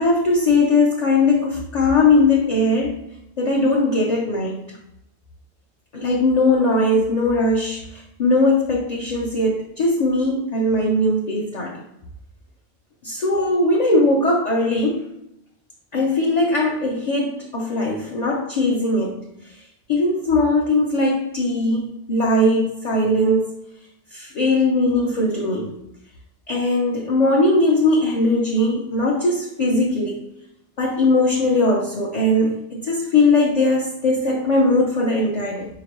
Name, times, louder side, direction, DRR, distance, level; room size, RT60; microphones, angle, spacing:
voice 1, 0.0-3.0 3.4-4.7 5.9-11.8 13.0-15.0 15.9-19.2 19.9-23.5 24.1-25.8 26.5-30.1 30.8-35.7, left 2 dB, 45° left, -3 dB, 0.6 m, -19 dB
4.3 x 2.9 x 3.0 m, 0.83 s
omnidirectional pair, 1.1 m